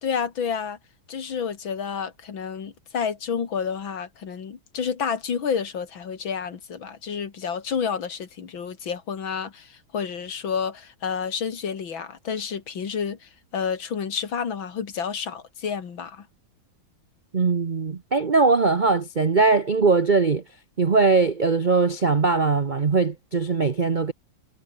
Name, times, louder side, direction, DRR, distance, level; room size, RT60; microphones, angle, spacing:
voice 1, 0.0-0.8 1.1-16.3, left 6 dB, 75° left, 2.9 m, -30 dB
voice 2, 17.3-20.4 20.8-24.1, right 4 dB, 50° right, 0.6 m, -20 dB
omnidirectional pair, 2.2 m